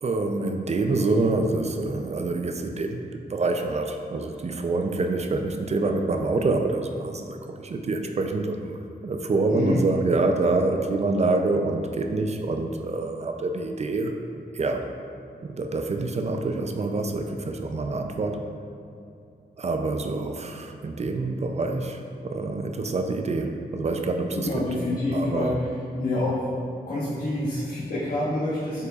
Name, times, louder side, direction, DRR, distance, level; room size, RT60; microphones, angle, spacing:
voice 1, 0.0-3.0 3.3-14.9 15.4-18.5 19.6-24.8 25.1-25.6, right 3 dB, 40° right, 5 dB, 0.4 m, -26 dB
voice 2, 9.5-9.9 24.3-25.5 25.9-26.4 26.9-28.9, left 2 dB, 65° left, -10 dB, 1.2 m, -27 dB
7.9 x 5.5 x 2.4 m, 2.6 s
wide cardioid pair, 130°, 17 cm